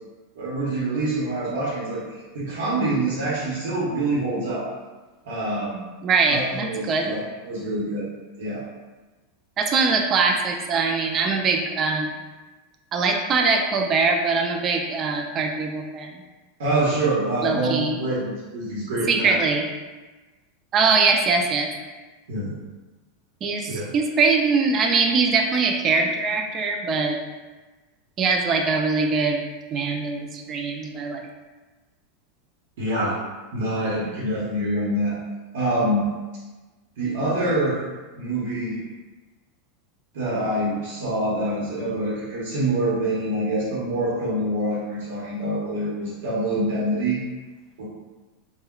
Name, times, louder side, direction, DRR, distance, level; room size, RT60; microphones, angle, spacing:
voice 1, 0.3-4.7 5.2-5.8 6.3-7.2 7.5-8.0 8.4-8.6 16.6-19.3 22.3-22.5 23.7-23.9 32.8-33.2 33.5-35.2 35.5-36.1 37.0-37.8 38.1-38.8 40.1-47.2 47.8-47.9, right 1 dB, 80° right, -7 dB, 0.8 m, -25 dB
voice 2, 6.0-7.1 9.6-12.2 12.9-16.2 17.4-18.0 19.1-19.7 20.7-21.7 23.4-27.2 28.2-29.4 29.7-31.2, right 4 dB, 30° right, 3 dB, 0.3 m, -22 dB
3.5 x 2.1 x 2.3 m, 1.2 s
supercardioid pair, 140°, 0 cm